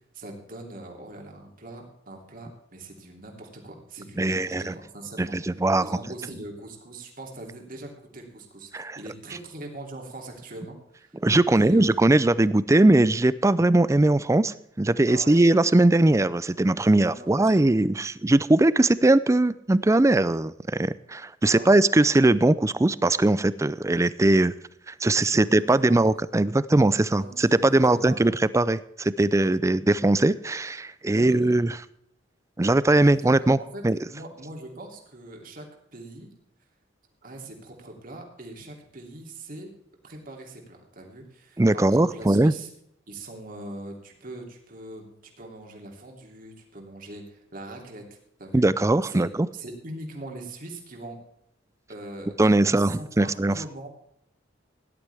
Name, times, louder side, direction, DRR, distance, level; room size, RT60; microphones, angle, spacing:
voice 1, 0.1-5.3 5.8-11.2 11.5-12.0 15.1-15.4 17.0-17.4 21.4-21.8 25.0-26.1 27.1-28.3 31.1-31.6 33.0-33.3 33.7-33.8 34.1-35.7 35.9-36.3 37.2-39.7 40.0-42.7 43.1-48.6 49.0-49.2 49.5-51.2 51.9-53.9, right 2 dB, 45° right, 2 dB, 2.9 m, -41 dB
voice 2, 4.2-4.7 5.2-6.0 8.7-9.0 11.2-24.5 24.9-31.8 32.6-34.0 41.6-42.5 48.5-49.5 52.4-53.6, right 2 dB, 15° right, 17 dB, 0.4 m, -20 dB
17.0 x 11.5 x 3.5 m, 0.73 s
head